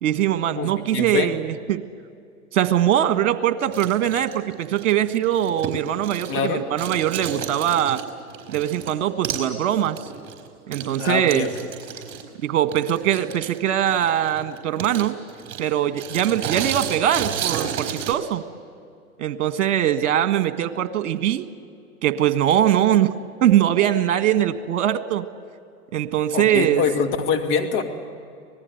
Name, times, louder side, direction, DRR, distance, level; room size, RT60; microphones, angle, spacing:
voice 1, 0.0-1.8 2.5-8.0 8.5-10.0 10.7-11.4 12.4-15.1 15.6-18.4 19.2-21.5 22.0-23.1 23.4-25.2 25.9-26.8, right 11 dB, 55° right, 10 dB, 1.6 m, -21 dB
voice 2, 0.6-1.3 6.3-6.7 11.0-11.5 26.3-27.8, left 6 dB, 35° left, 4 dB, 2.5 m, -24 dB
sound 1, 3.6-6.5 6.8-8.9 9.2-9.5 9.8-18.1, right 8 dB, 30° right, 4.2 m, -32 dB
26.0 x 19.5 x 8.0 m, 2.4 s
hypercardioid pair, 115°, 44 cm